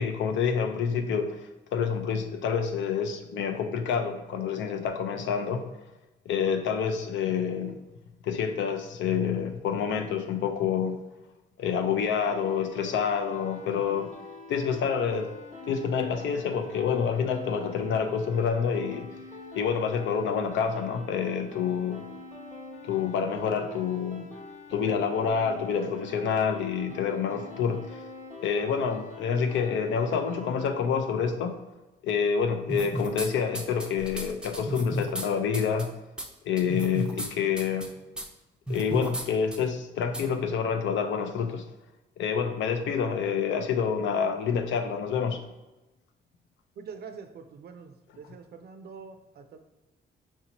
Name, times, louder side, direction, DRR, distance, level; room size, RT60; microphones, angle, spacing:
voice 1, 0.0-1.4 1.7-5.7 6.3-7.8 8.2-11.0 11.6-14.1 14.5-15.3 15.7-19.1 19.5-22.0 22.9-24.2 24.7-27.9 28.4-31.6 32.0-35.9 36.4-37.9 38.7-41.6 42.2-45.4, left 6 dB, 70° left, 6 dB, 0.5 m, -27 dB
sound 1, 12.0-30.7, left 3 dB, 35° left, 1.0 m, -45 dB
sound 2, 32.7-33.3 33.5-35.3 35.5-35.8 36.2-36.3 36.6-37.3 37.6-37.9 38.2-38.3 38.7-39.2 39.5-39.6 40.1-40.2, equal, 5° right, 0.5 m, -33 dB
voice 2, 46.8-49.6, right 5 dB, 55° right, 7 dB, 0.5 m, -45 dB
4.5 x 2.7 x 2.9 m, 1.1 s
cardioid pair, 90°, 20 cm